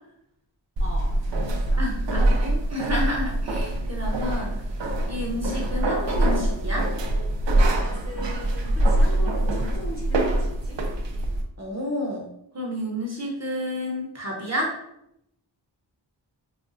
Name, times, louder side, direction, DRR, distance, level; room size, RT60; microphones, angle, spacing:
voice 1, 0.8-1.9 7.7-10.8, left 1 dB, 30° left, -2 dB, 1.1 m, -40 dB
sound 1, 0.8-11.4, right 1 dB, 75° right, 0.6 m, -24 dB
voice 2, 1.8-4.6 5.1-6.9 11.6-12.3 12.5-14.8, left 1 dB, 35° right, -1 dB, 0.9 m, -30 dB
4.9 x 2.2 x 2.6 m, 0.78 s
wide cardioid pair, 60°, 44 cm